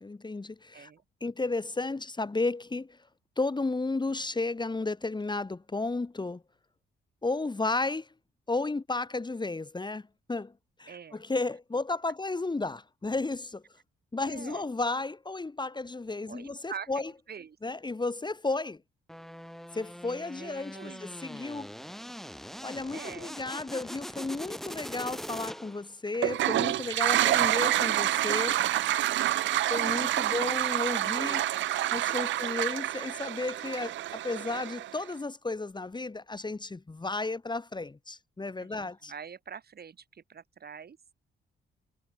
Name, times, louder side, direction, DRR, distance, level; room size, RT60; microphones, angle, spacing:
voice 1, 0.0-0.9 1.2-3.0 3.4-6.4 7.2-8.1 8.5-10.5 10.8-13.6 14.1-17.1 17.6-18.8 19.7-21.7 22.6-28.6 29.7-31.4 31.9-39.1, left 3 dB, 20° left, 1.7 m, -33 dB
voice 2, 10.9-11.2 14.2-14.6 16.3-17.6 20.4-21.0 22.9-23.4 29.8-30.2 30.4-30.6 30.9-31.8 38.6-41.1, right 7 dB, 50° right, 4.0 m, -45 dB
sound 1, 19.1-25.9, equal, ahead, 6.7 m, -42 dB
Toilet flush, 26.1-35.0, right 14 dB, 70° right, 0.5 m, -28 dB
cardioid pair, 65°, 20 cm